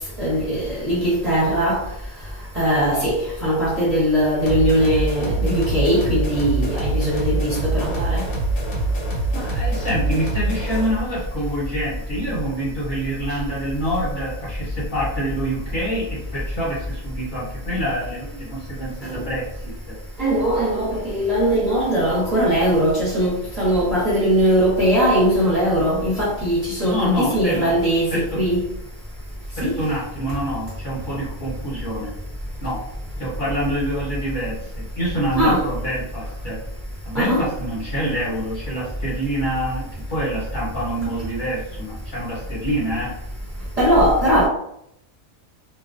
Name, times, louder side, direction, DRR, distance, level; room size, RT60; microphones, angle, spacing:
voice 1, 0.2-1.8 2.5-8.2 20.2-28.6 29.6-29.8 35.4-35.6 37.1-37.5 43.8-44.5, equal, 35° right, 0.7 m, -20 dB
sound 1, 4.5-11.0, right 2 dB, 80° left, 1.1 m, -24 dB
voice 2, 9.3-19.9 26.8-27.8 28.1-28.4 29.6-32.1 32.6-32.9 33.2-36.6 37.0-43.1, right 1 dB, 45° left, 0.8 m, -26 dB
2.3 x 2.2 x 2.4 m
omnidirectional pair, 1.5 m